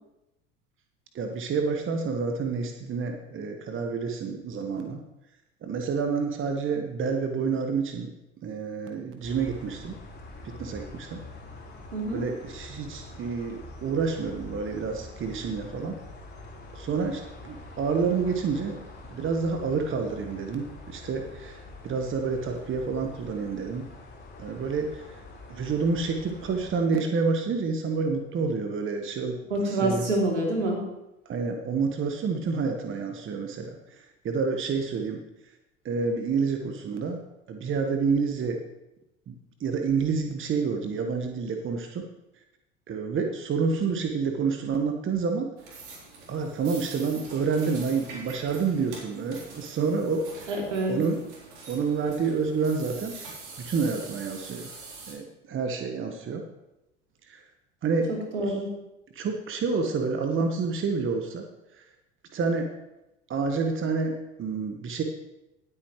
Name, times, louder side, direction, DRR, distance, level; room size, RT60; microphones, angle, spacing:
voice 1, 1.1-5.0 5.6-8.1 8.4-10.0 10.4-11.2 12.1-16.0 16.7-18.8 19.1-23.9 24.4-25.2 25.5-30.1 31.2-35.2 35.8-37.2 37.5-38.6 39.3-42.1 42.9-45.5 46.3-50.6 50.9-51.2 51.7-53.1 53.6-54.7 55.1-56.4 57.3-57.4 57.8-58.1 58.5-58.6 59.1-61.4 61.7-61.9 62.3-62.7 63.3-65.0, right 5 dB, 35° right, 5 dB, 1.3 m, -28 dB
sound 1, 9.2-26.7, left 2 dB, 25° left, 4.0 m, -45 dB
voice 2, 11.9-12.3 29.5-30.9 50.5-51.0 58.1-58.7, right 1 dB, 85° right, -1 dB, 3.1 m, -27 dB
sound 2, 45.6-55.1, right 4 dB, 65° right, 3.7 m, -45 dB
19.0 x 8.6 x 3.2 m, 0.93 s
hypercardioid pair, 70°, 36 cm